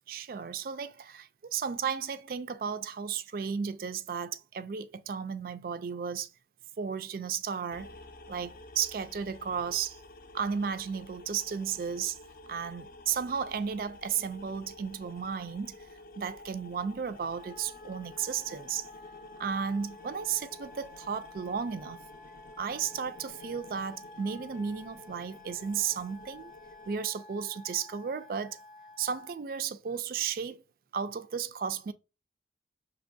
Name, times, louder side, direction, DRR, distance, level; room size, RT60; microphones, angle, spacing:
voice 1, 0.1-6.3 6.8-7.9 8.3-10.0 10.3-12.2 12.5-15.8 16.2-18.9 19.4-22.0 22.6-26.5 26.9-28.6 29.0-30.6 30.9-31.9, right 7 dB, 50° right, 0.3 m, -34 dB
sound 1, 7.7-27.0, left 2 dB, 50° left, 0.5 m, -51 dB
Wind instrument woodwind instrument, 17.3-29.4, left 3 dB, ahead, 0.6 m, -52 dB
6.0 x 2.9 x 2.6 m
head